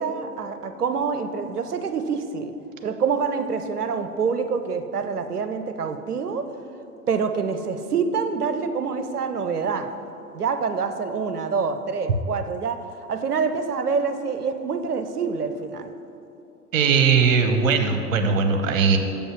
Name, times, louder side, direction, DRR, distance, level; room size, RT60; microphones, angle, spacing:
voice 1, 0.0-2.5 2.8-6.5 7.1-9.9 10.3-15.9, right 5 dB, 90° right, 9 dB, 0.6 m, -26 dB
voice 2, 16.7-19.0, right 5 dB, 60° right, 6 dB, 0.9 m, -19 dB
6.7 x 5.4 x 5.8 m, 2.7 s
figure-of-eight pair, 90°, 45 cm